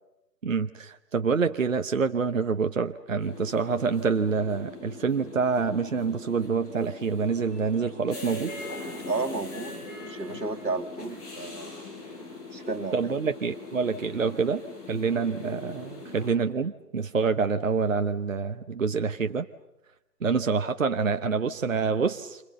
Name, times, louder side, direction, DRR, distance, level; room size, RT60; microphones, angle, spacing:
voice 1, 0.4-8.5 12.9-19.5 20.2-22.4, right 5 dB, 55° right, 9 dB, 0.9 m, -27 dB
sound 1, 3.2-16.3, left 3 dB, 25° left, 7.6 m, -41 dB
voice 2, 9.0-9.8 10.0-11.7 12.5-13.1, right 3 dB, 85° right, 5 dB, 2.0 m, -32 dB
28.5 x 26.5 x 6.8 m, 0.96 s
figure-of-eight pair, 155°, 48 cm